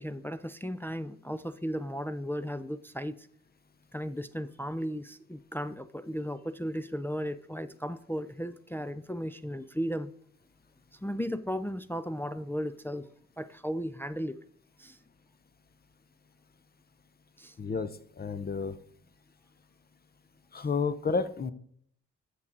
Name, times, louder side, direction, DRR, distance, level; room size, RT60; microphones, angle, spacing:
voice 1, 0.0-3.3 3.9-10.1 11.0-13.1 13.4-14.4 14.8-15.0 17.4-17.5, equal, 5° left, 0.5 m, -35 dB
voice 2, 17.6-18.8 20.5-21.5, left 4 dB, 25° left, 0.8 m, -31 dB
8.3 x 6.2 x 4.0 m
hypercardioid pair, 50°, 34 cm